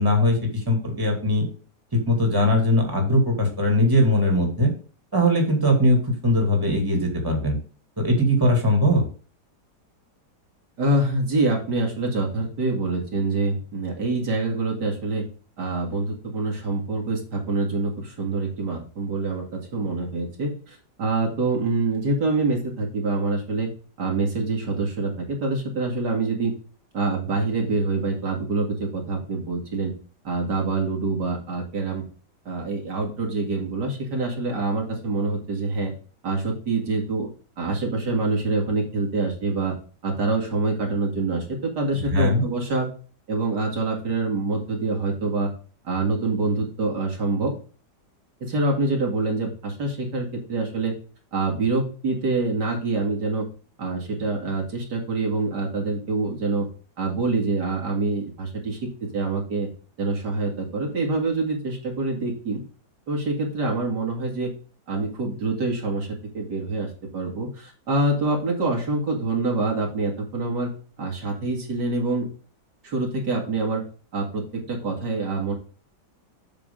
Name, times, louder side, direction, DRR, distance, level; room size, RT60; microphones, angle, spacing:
voice 1, 0.0-1.5 1.9-4.7 5.1-7.6 8.0-9.0 42.1-42.4, left 1 dB, 10° right, 2 dB, 2.4 m, -20 dB
voice 2, 10.8-15.2 15.6-23.7 24.0-26.5 26.9-29.9 30.2-32.0 32.5-35.9 36.2-37.3 37.6-39.7 40.0-42.9 43.3-45.5 45.8-47.6 48.4-50.9 51.3-53.5 53.8-56.7 57.0-59.7 60.0-62.6 63.1-64.5 64.9-66.1 66.3-70.7 71.0-72.3 72.8-73.9 74.1-75.5, right 3 dB, 75° right, 0 dB, 2.5 m, -26 dB
7.8 x 6.0 x 3.7 m, 0.39 s
omnidirectional pair, 1.8 m